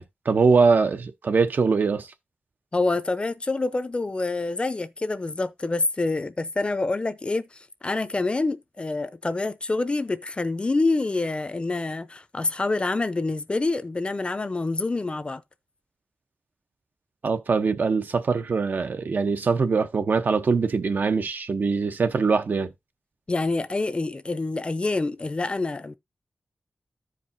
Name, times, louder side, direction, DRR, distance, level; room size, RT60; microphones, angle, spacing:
voice 1, 0.0-2.1 17.2-22.7, right 4 dB, 70° right, 0.8 m, -22 dB
voice 2, 2.7-15.4 23.3-25.9, left 3 dB, 30° left, 0.6 m, -27 dB
14.5 x 4.9 x 2.7 m
wide cardioid pair, 110°, 3 cm